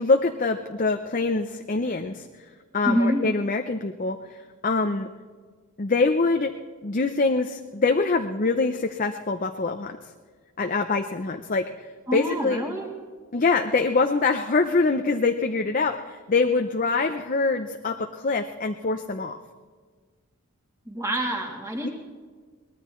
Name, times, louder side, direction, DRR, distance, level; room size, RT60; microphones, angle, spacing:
voice 1, 0.0-2.3 2.7-4.2 4.6-5.1 5.8-6.5 6.8-10.0 10.6-11.7 12.1-12.7 13.3-19.4 21.8-21.9, left 3 dB, 35° left, 5 dB, 0.6 m, -24 dB
voice 2, 2.8-3.2 12.1-12.9 20.9-21.9, equal, 15° right, -2 dB, 2.6 m, -26 dB
23.0 x 19.5 x 3.1 m, 1.5 s
head